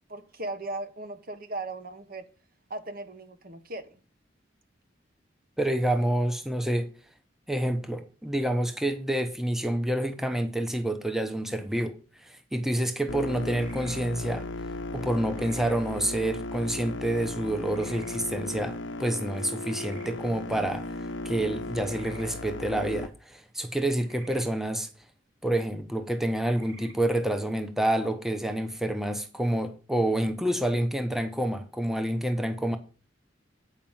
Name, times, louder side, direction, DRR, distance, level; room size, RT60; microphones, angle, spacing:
voice 1, 0.1-2.3 2.7-4.0, right 2 dB, 50° right, 1.1 m, -37 dB
voice 2, 5.6-6.9 7.5-14.5 14.9-24.9 25.4-32.8, right 1 dB, ahead, 0.8 m, -28 dB
sound 1, 13.1-23.1, left 2 dB, 90° left, 0.8 m, -36 dB
sound 2, 13.5-14.0 15.3-15.8 17.7-18.2 19.7-20.1 21.8-22.3 24.0-24.5 26.5-26.9, right 3 dB, 85° right, 2.5 m, -50 dB
8.9 x 5.2 x 7.2 m
head